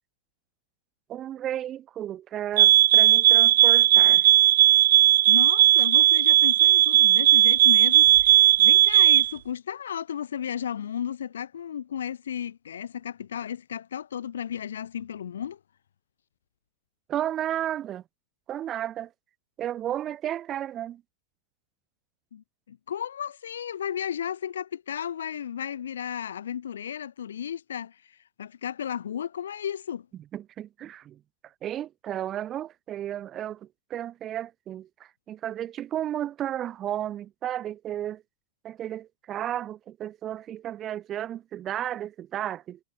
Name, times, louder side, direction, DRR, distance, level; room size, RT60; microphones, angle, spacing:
voice 1, 1.1-4.3 17.1-18.0 18.5-19.1 19.6-21.0 30.3-38.2 38.6-42.8, right 11 dB, 30° right, 3.8 m, -33 dB
sound 1, 2.6-9.3, right 13 dB, 55° right, 0.7 m, -17 dB
voice 2, 5.3-15.6 22.3-30.1, left 9 dB, 65° left, 4.4 m, -34 dB
figure-of-eight pair, 90°, 0 cm